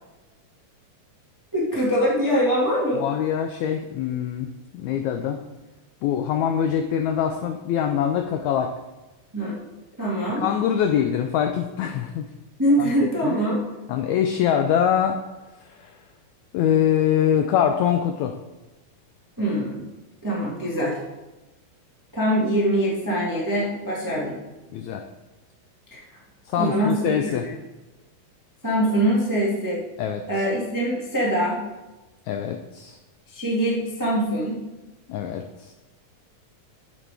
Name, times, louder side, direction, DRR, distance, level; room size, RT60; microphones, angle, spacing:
voice 1, 1.5-3.0 9.3-9.6 10.0-10.4 12.6-13.6 19.4-19.8 20.2-21.0 22.1-24.4 25.9-26.0 26.6-27.5 28.6-29.8 30.3-31.6 33.3-34.6, equal, 15° right, -5 dB, 0.7 m, -23 dB
voice 2, 3.0-5.4 6.0-8.7 10.4-12.3 12.8-12.9 13.2-13.4 13.9-15.2 15.6-16.0 16.5-18.4 24.7-25.1 26.5-27.5 30.0-30.2 32.3-33.0 35.1-35.7, left 9 dB, 85° left, 6 dB, 1.6 m, -24 dB
8.1 x 7.5 x 3.4 m, 1.1 s
omnidirectional pair, 3.8 m